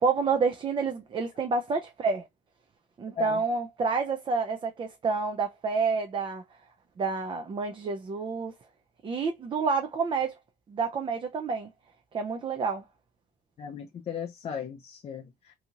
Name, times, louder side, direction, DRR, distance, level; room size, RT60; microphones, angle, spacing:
voice 1, 0.0-2.3 3.0-6.4 7.0-8.5 9.0-10.3 10.7-11.7 12.1-12.8, right 4 dB, 30° right, 0.4 m, -28 dB
voice 2, 13.6-15.5, left 7 dB, 35° left, 0.5 m, -36 dB
2.7 x 2.4 x 2.8 m
cardioid pair, 110°, 17 cm